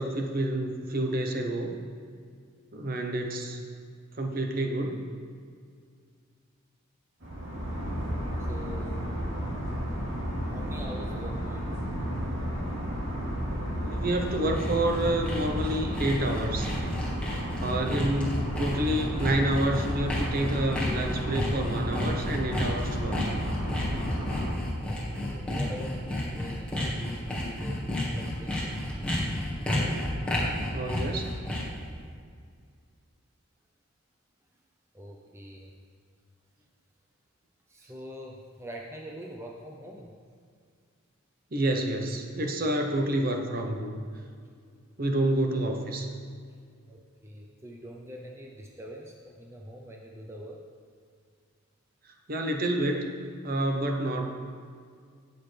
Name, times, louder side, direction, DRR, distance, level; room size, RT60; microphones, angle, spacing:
voice 1, 0.0-1.8 2.7-3.6 4.2-5.0 13.8-16.7 17.6-23.2 30.7-31.3 41.5-44.0 45.0-46.1 52.3-53.1 53.4-54.3, right 1 dB, 40° right, 3 dB, 0.9 m, -28 dB
sound 1, 7.2-24.5, equal, 60° right, 2.9 m, -32 dB
voice 2, 8.4-9.1 10.4-11.9 17.8-18.2 24.9-28.9 34.9-35.7 37.7-40.1 46.9-50.6, equal, 10° right, 0 dB, 0.6 m, -44 dB
Sawing, 14.0-31.8, left 1 dB, 5° left, 1.7 m, -32 dB
16.5 x 6.7 x 3.4 m, 2.1 s
head